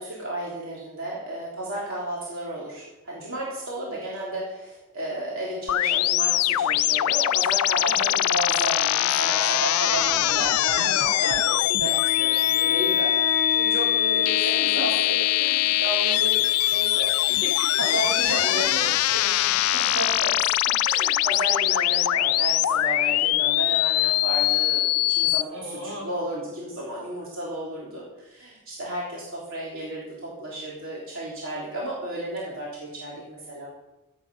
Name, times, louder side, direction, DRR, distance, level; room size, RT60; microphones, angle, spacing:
voice 1, 0.0-16.4 16.6-17.4 17.8-18.7 19.7-33.7, right 1 dB, 60° right, -5 dB, 3.3 m, -33 dB
sound 1, 5.7-25.4, left 15 dB, 75° left, 0.3 m, -22 dB
voice 2, 7.8-8.2 10.7-11.1 14.4-14.9 17.3-19.7 25.5-26.1, right 1 dB, 80° right, -1 dB, 4.4 m, -37 dB
Bowed string instrument, 11.8-16.9, left 5 dB, 40° left, 1.0 m, -34 dB
14.0 x 8.9 x 5.4 m, 1.0 s
head